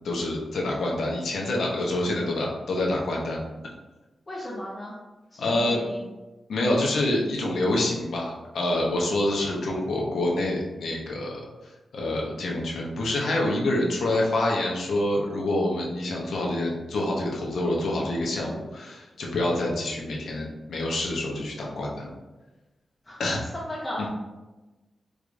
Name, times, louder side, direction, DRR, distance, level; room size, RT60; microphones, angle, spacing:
voice 1, 0.0-3.4 5.4-5.8 6.5-11.4 11.9-22.1 23.2-23.4 24.0-24.1, left 1 dB, 80° left, -2 dB, 0.7 m, -27 dB
voice 2, 4.3-4.9 5.3-6.1 23.1-23.2 23.5-24.1, left 1 dB, 20° left, -5 dB, 0.5 m, -35 dB
4.7 x 2.4 x 2.5 m, 1.1 s
wide cardioid pair, 165°, 0 cm